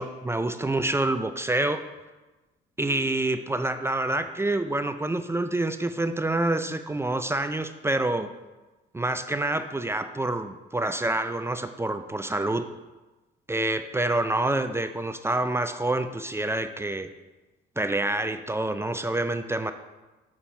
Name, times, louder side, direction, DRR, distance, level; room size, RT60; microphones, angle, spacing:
voice 1, 0.0-1.8 2.8-8.3 8.9-12.7 13.5-17.1 17.8-19.7, right 2 dB, 15° right, 9 dB, 0.4 m, -27 dB
7.3 x 4.3 x 4.4 m, 1.1 s
cardioid pair, 90°, 20 cm